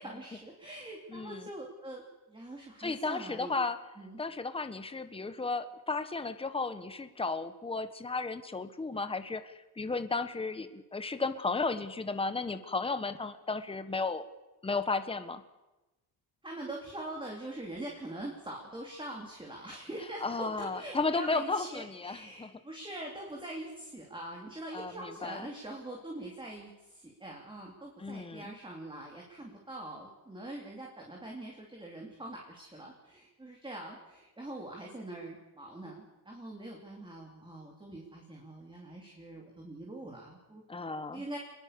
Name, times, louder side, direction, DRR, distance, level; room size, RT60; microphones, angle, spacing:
voice 1, 0.0-3.5 4.0-4.2 16.4-41.4, right 1 dB, 10° right, -1 dB, 3.8 m, -43 dB
voice 2, 1.1-1.5 2.8-3.8 4.2-14.2 14.6-15.4 20.2-22.6 24.7-25.5 28.0-28.5 40.7-41.2, left 3 dB, 15° left, 10 dB, 1.4 m, -34 dB
26.5 x 21.5 x 7.0 m, 1.1 s
cardioid pair, 135°, 39 cm